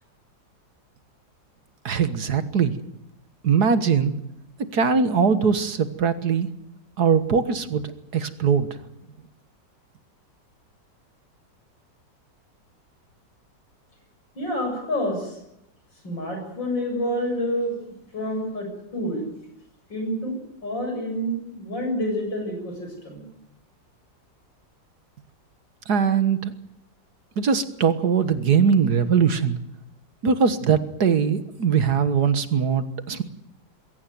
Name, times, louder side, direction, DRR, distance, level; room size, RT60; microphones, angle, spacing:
voice 1, 1.9-2.7 3.4-4.1 4.7-6.5 7.0-8.7 25.9-26.5 27.4-29.6 30.2-33.2, right 6 dB, 60° right, 11 dB, 1.9 m, -21 dB
voice 2, 14.3-15.4 16.0-19.3 19.9-20.3 20.6-23.3, equal, 75° left, 3 dB, 8.0 m, -28 dB
22.0 x 17.0 x 9.4 m, 0.83 s
omnidirectional pair, 2.0 m